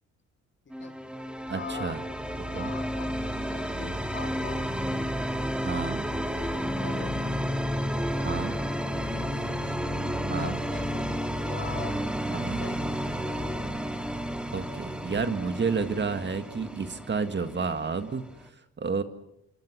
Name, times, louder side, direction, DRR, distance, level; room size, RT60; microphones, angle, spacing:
voice 1, 0.7-1.0 1.5-2.0 2.3-4.7 6.4-7.3 8.7-12.0 12.3-13.0, left 6 dB, 40° left, 7 dB, 2.5 m, -43 dB
sound 1, 0.7-18.5, equal, 5° right, 2.6 m, -31 dB
voice 2, 1.5-2.0 2.5-2.7 5.6-6.0 8.2-8.6 10.3-10.6 12.3-12.6 14.5-18.2 18.8-19.0, right 5 dB, 35° right, 9 dB, 2.0 m, -30 dB
27.0 x 25.5 x 6.3 m, 0.78 s
cardioid pair, 90°, 30 cm